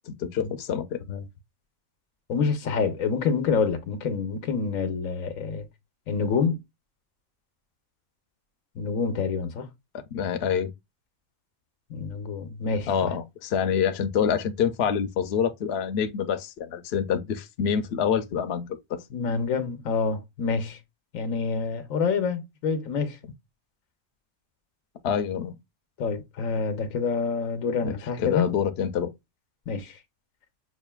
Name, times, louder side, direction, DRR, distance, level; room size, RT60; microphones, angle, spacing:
voice 1, 0.1-1.0 9.9-10.7 12.9-19.0 25.0-25.5 27.8-29.1, left 7 dB, 60° left, 0.8 m, -27 dB
voice 2, 2.3-5.7 6.1-6.6 8.7-9.7 11.9-13.1 19.1-20.8 21.1-23.2 26.0-28.5 29.7-30.0, left 5 dB, 85° left, 1.2 m, -27 dB
6.3 x 2.5 x 2.2 m
omnidirectional pair, 1.4 m